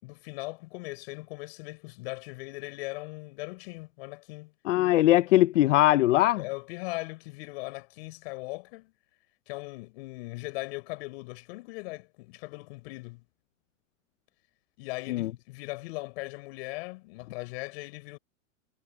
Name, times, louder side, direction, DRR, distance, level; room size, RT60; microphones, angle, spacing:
voice 1, 0.0-4.5 6.4-8.9 9.5-13.2 14.8-18.2, left 24 dB, 50° left, 5.7 m, -39 dB
voice 2, 4.7-6.4 15.1-15.3, left 15 dB, 70° left, 1.0 m, -21 dB
supercardioid pair, 145°, 39 cm